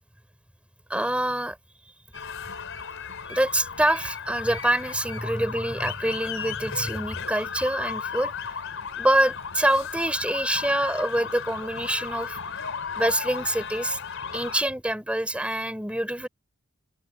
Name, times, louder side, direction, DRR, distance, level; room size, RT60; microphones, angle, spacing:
voice 1, 0.9-1.6 1.8-1.9 3.3-8.3 9.0-12.4 12.9-14.0 14.3-16.3, right 1 dB, 5° right, 4.4 m, -25 dB
sound 1, 2.1-14.6, left 6 dB, 65° left, 4.9 m, -35 dB
open air
head